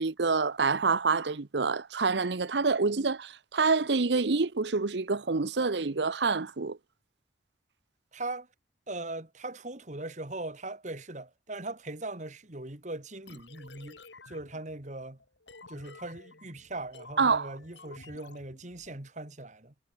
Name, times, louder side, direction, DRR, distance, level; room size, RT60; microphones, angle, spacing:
voice 1, 0.0-6.8 17.2-17.5, right 4 dB, 70° right, 0.8 m, -27 dB
voice 2, 8.1-8.5 8.9-14.0 14.3-15.2 15.7-19.7, right 2 dB, 40° right, 2.2 m, -40 dB
sound 1, 13.3-19.0, left 3 dB, 75° left, 4.2 m, -52 dB
head